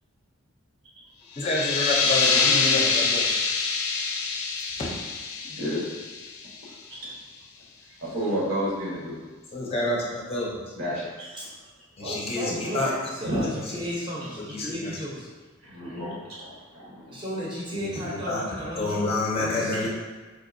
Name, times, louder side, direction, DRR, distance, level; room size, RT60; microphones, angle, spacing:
sound 1, 1.3-6.7, left 4 dB, 80° left, 0.4 m, -25 dB
voice 1, 1.4-3.3 4.8-4.9 9.5-10.6 12.0-12.9 14.4-14.9 15.8-16.1 17.8-18.4 18.8-19.9, left 2 dB, 30° left, -3 dB, 0.5 m, -28 dB
voice 2, 2.3-3.1 11.4-11.5 12.0-15.3 17.1-19.9, equal, 20° right, -6 dB, 0.7 m, -34 dB
voice 3, 2.9-3.4 5.6-5.8 7.0-7.1 8.0-9.2 10.8-11.4 13.2-13.4 15.6-17.2 19.7-19.9, equal, 65° right, -6 dB, 1.1 m, -31 dB
4.4 x 2.7 x 2.5 m, 1.3 s
head